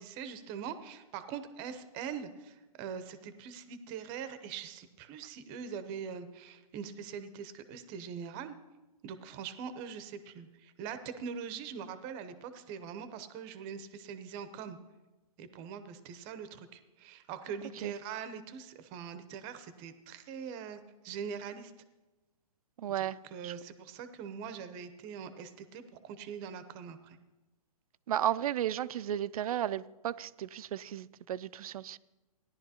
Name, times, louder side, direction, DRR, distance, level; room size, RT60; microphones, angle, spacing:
voice 1, 0.0-8.6 9.0-14.8 15.4-21.7 22.9-27.2, right 7 dB, 25° right, 0.7 m, -43 dB
voice 2, 22.8-23.2 23.4-23.5 28.1-32.0, right 11 dB, 65° right, 0.4 m, -34 dB
16.5 x 11.0 x 2.8 m
hypercardioid pair, 150°, 20 cm